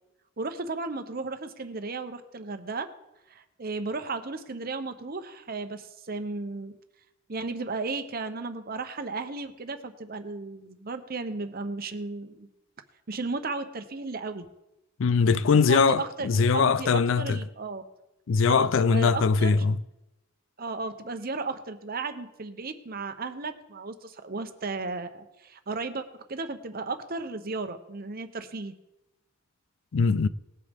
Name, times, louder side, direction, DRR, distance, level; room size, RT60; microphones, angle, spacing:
voice 1, 0.4-2.9 3.3-6.7 7.3-12.5 13.1-14.5 15.7-17.8 18.5-19.5 20.6-28.7, right 3 dB, 45° right, 0.9 m, -34 dB
voice 2, 15.0-17.4 18.3-19.8 29.9-30.3, left 5 dB, 65° left, 0.4 m, -22 dB
19.5 x 8.1 x 3.6 m
head